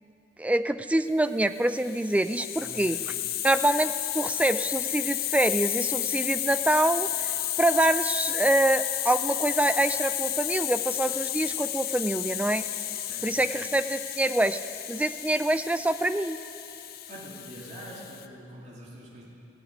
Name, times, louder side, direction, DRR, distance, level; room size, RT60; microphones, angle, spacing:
voice 1, 0.4-3.0 3.4-7.3 7.6-12.6 13.2-14.6 14.9-16.4, right 1 dB, 5° right, 11 dB, 0.3 m, -25 dB
Hiss, 1.6-18.3, left 12 dB, 50° left, 0.5 m, -32 dB
voice 2, 2.5-3.1 13.0-13.5 17.1-19.2, equal, 40° right, -5 dB, 2.5 m, -45 dB
15.5 x 7.9 x 9.3 m, 2.8 s
head